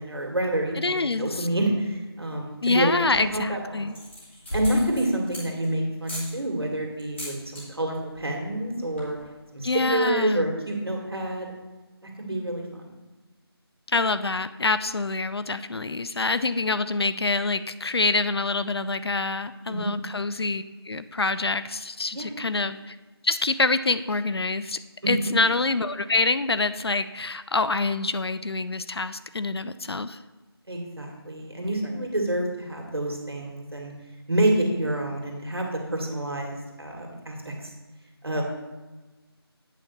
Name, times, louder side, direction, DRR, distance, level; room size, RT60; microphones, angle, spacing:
voice 1, 0.0-2.9 3.3-3.9 4.5-9.2 9.5-11.5 12.0-13.0 19.7-19.9 22.1-22.3 25.0-25.3 30.7-33.9 34.3-37.5 38.2-38.4, right 1 dB, 70° right, 1 dB, 2.0 m, -28 dB
voice 2, 0.8-1.5 2.6-3.9 9.6-10.5 13.9-23.0 23.2-24.8 25.1-30.2, left 3 dB, 75° left, 13 dB, 0.5 m, -26 dB
sound 1, 3.0-3.4 3.9-5.7 6.0-6.3 7.0-7.6 7.9-8.2 8.5-8.6 8.8-9.2, equal, 30° left, 2.6 m, -36 dB
8.3 x 4.0 x 6.7 m, 1.2 s
figure-of-eight pair, 175°, 13 cm